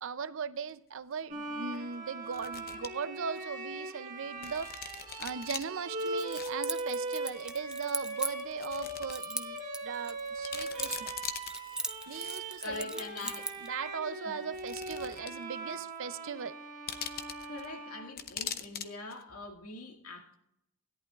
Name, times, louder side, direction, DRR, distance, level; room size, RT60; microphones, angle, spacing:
voice 1, 0.0-4.7 5.2-11.1 11.5-11.7 12.1-13.3 13.6-16.6, right 6 dB, 60° right, 0.6 m, -39 dB
sound 1, 0.7-0.8 2.2-2.9 3.4-3.5 4.4-5.6 6.2-6.5 6.8-6.9 7.7-7.8 8.5-9.1 9.5-9.6 10.1-10.2 10.4-11.6 12.1-12.7 13.6-13.7 14.5-15.4 15.7-15.8 16.9-17.7 18.2-18.9 19.1-19.2, left 8 dB, 45° left, 0.8 m, -41 dB
Bowed string instrument, 1.3-18.7, right 2 dB, 35° right, 1.5 m, -40 dB
Keys jangling, 6.0-8.7 9.1-11.2 11.4-13.7, right 2 dB, 5° right, 0.4 m, -38 dB
voice 2, 12.6-13.4 14.3-14.4 17.5-20.3, left 3 dB, 80° left, 2.1 m, -43 dB
17.0 x 11.0 x 2.4 m
head